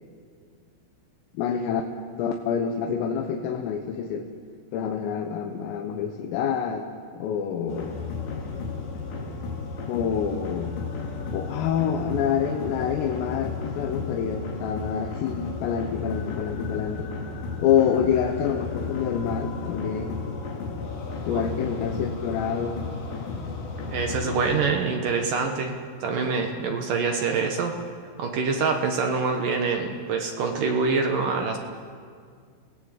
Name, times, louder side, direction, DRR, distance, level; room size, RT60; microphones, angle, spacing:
voice 1, 1.4-1.8 2.2-4.3 4.7-6.9 7.2-7.9 9.9-10.7 11.3-17.1 17.6-20.2 21.3-22.8, left 8 dB, 90° left, 3 dB, 3.9 m, -27 dB
sound 1, 7.7-24.6, left 4 dB, 60° left, 4.8 m, -33 dB
voice 2, 23.9-27.8 28.2-31.6, right 4 dB, 70° right, 3 dB, 2.1 m, -25 dB
29.0 x 18.0 x 8.1 m, 2.1 s
omnidirectional pair, 5.8 m